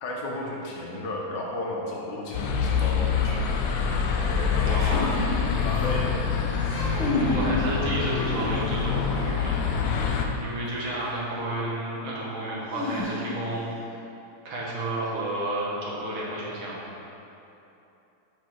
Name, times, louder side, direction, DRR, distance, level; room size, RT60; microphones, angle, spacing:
voice 1, 0.0-3.5 4.2-6.1, left 1 dB, 65° left, -3 dB, 1.4 m, -33 dB
sound 1, 2.3-10.3, left 6 dB, 85° left, 0.8 m, -26 dB
voice 2, 4.6-5.1 7.2-9.6 10.4-13.7 14.5-16.8, right 1 dB, 80° right, -6 dB, 1.9 m, -31 dB
sound 2, 4.8-6.0 6.5-7.4 7.9-8.8 10.8-10.9 12.7-13.5, left 1 dB, 40° left, 1.7 m, -31 dB
4.7 x 4.6 x 4.5 m, 2.9 s
omnidirectional pair, 2.2 m